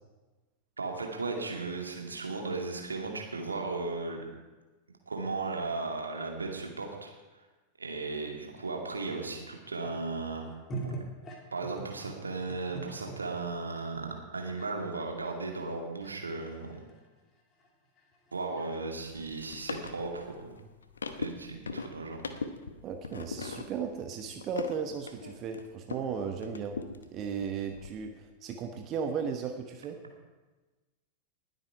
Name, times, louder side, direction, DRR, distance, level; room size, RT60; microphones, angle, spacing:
voice 1, 0.8-4.2 5.1-7.1 7.8-10.4 10.8-11.0 11.5-16.8 18.3-20.5 21.2-22.2, right 3 dB, 75° right, 1 dB, 2.1 m, -36 dB
sound 1, 8.5-13.2 13.7-13.9 14.6-14.7 14.9-19.8, right 2 dB, 25° left, 2.6 m, -44 dB
sound 2, 19.1-26.1 26.4-27.9, left 4 dB, 70° left, 0.9 m, -41 dB
voice 2, 22.8-26.8 27.1-30.0, right 6 dB, 35° right, 5 dB, 1.0 m, -35 dB
20.0 x 8.1 x 4.7 m, 1.2 s
figure-of-eight pair, 90°, 0 cm